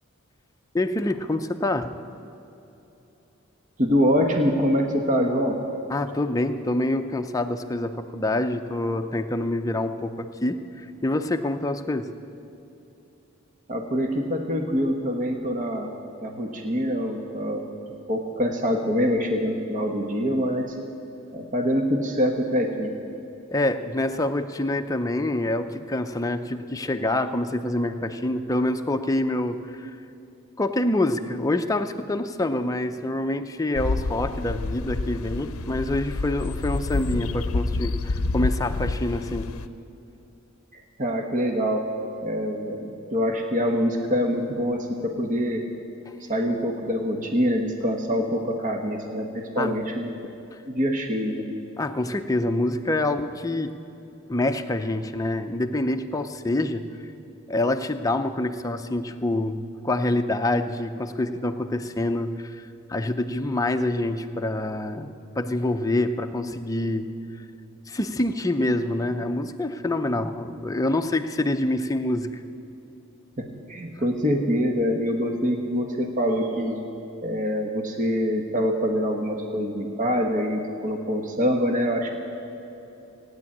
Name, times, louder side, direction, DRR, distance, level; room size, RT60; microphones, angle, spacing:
voice 1, 0.7-1.9 5.9-12.1 23.5-29.9 30.6-39.5 49.6-49.8 51.8-53.7 54.3-56.9 57.5-65.1 65.4-67.1 67.9-72.3, left 1 dB, 15° left, 6 dB, 0.6 m, -26 dB
voice 2, 3.8-5.6 13.7-15.9 16.2-17.7 18.1-20.7 21.3-23.0 40.7-41.8 42.2-45.7 46.2-50.1 50.7-51.4 73.4-76.8 77.2-82.2, equal, 40° right, 3 dB, 1.1 m, -25 dB
sound 1, 33.7-39.7, left 3 dB, 90° left, 0.6 m, -28 dB
17.0 x 9.7 x 8.5 m, 2.9 s
head